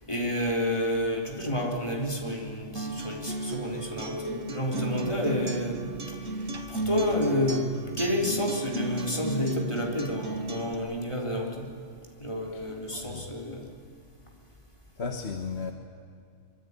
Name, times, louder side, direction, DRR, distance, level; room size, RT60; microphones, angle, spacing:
voice 1, 0.1-7.7 8.0-11.7 12.2-13.6, left 1 dB, 20° left, -1 dB, 4.0 m, -30 dB
Acoustic guitar, 2.8-10.7, right 3 dB, 70° right, 2.1 m, -34 dB
voice 2, 12.9-13.3 15.0-15.7, left 5 dB, 55° left, 4 dB, 1.6 m, -35 dB
25.5 x 24.0 x 9.8 m, 2.3 s
omnidirectional pair, 1.4 m